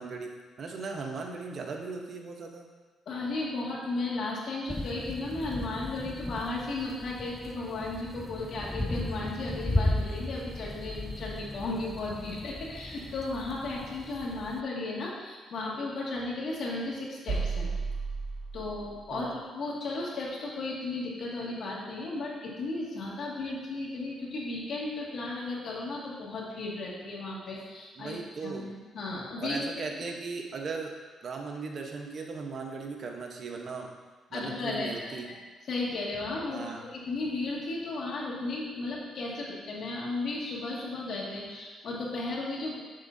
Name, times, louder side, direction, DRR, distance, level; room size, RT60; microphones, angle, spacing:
voice 1, 0.0-2.7 19.1-19.4 28.0-28.7 29.4-30.9 31.2-33.9 34.3-35.3 36.5-36.8, right 4 dB, 50° right, 2 dB, 0.9 m, -38 dB
voice 2, 3.1-17.7 18.5-28.2 28.4-29.6 34.3-35.3 35.7-42.8, left 2 dB, 60° left, -4 dB, 2.0 m, -35 dB
sound 1, 4.7-14.6, left 1 dB, 10° left, 0.3 m, -35 dB
sound 2, 17.3-19.1, right 4 dB, 70° right, 1.5 m, -33 dB
7.5 x 7.2 x 2.7 m, 1.4 s
cardioid pair, 90°, 0 cm